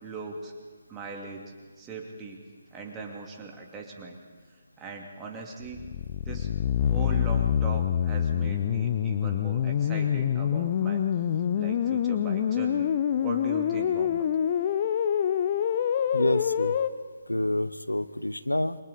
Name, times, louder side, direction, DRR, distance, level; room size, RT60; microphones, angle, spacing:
voice 1, 0.0-0.5 0.9-2.4 2.7-4.2 4.8-5.8 6.2-6.5 6.9-11.0 11.5-12.9 13.2-14.3, right 4 dB, 15° right, 1 dB, 2.5 m, -40 dB
sound 1, 5.6-16.9, left 9 dB, 35° left, 0.7 m, -26 dB
voice 2, 16.1-16.8 17.3-18.8, left 1 dB, 85° left, 13 dB, 0.9 m, -27 dB
28.0 x 23.0 x 4.2 m, 1.4 s
figure-of-eight pair, 140°, 0 cm